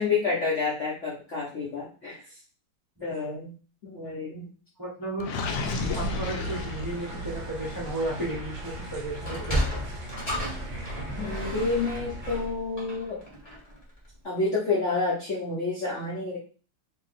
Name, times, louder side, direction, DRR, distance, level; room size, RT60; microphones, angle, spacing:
voice 1, 0.0-2.2 3.0-3.5 3.8-4.5 11.2-13.2 14.2-16.4, left 4 dB, 60° left, -7 dB, 0.8 m, -29 dB
voice 2, 4.8-5.3 5.9-9.9, right 2 dB, 25° right, -5 dB, 0.4 m, -34 dB
Gurgling, 5.2-7.3, left 3 dB, 85° left, 0.9 m, -32 dB
sound 1, 5.6-12.3, right 1 dB, 60° right, 0.8 m, -38 dB
Sliding door, 9.1-13.8, equal, 25° left, 0.9 m, -33 dB
2.9 x 2.9 x 4.0 m, 0.38 s
omnidirectional pair, 2.4 m